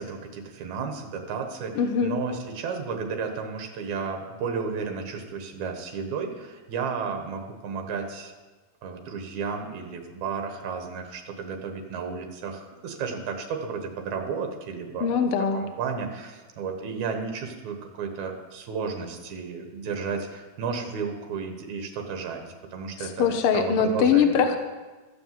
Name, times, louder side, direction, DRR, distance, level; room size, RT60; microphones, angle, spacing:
voice 1, 0.0-8.3 8.8-15.2 15.5-22.4 22.7-24.4, right 5 dB, 70° right, 4 dB, 2.7 m, -33 dB
voice 2, 1.7-2.1 15.0-15.6 23.2-24.6, left 7 dB, 65° left, 6 dB, 1.4 m, -22 dB
14.5 x 7.1 x 7.6 m, 1.3 s
omnidirectional pair, 3.6 m